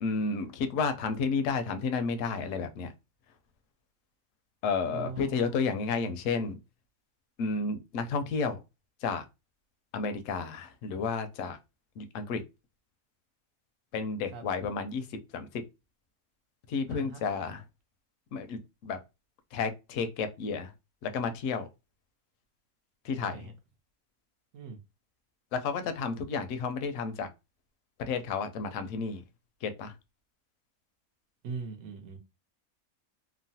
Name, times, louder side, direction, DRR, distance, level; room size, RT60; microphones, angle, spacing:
voice 1, 0.0-2.9 4.6-6.6 7.4-8.6 9.0-9.2 9.9-11.6 12.0-12.4 13.9-15.1 15.3-15.6 16.7-17.6 18.3-19.0 19.5-20.7 21.0-21.7 23.0-23.5 25.5-27.3 28.0-29.2 29.6-29.9, left 5 dB, 70° left, 0.8 m, -31 dB
voice 2, 4.9-6.1 14.3-14.4 16.9-17.2 23.2-23.5 24.5-24.8 31.4-32.2, right 4 dB, 70° right, 1.0 m, -41 dB
3.0 x 2.1 x 2.7 m
omnidirectional pair, 1.6 m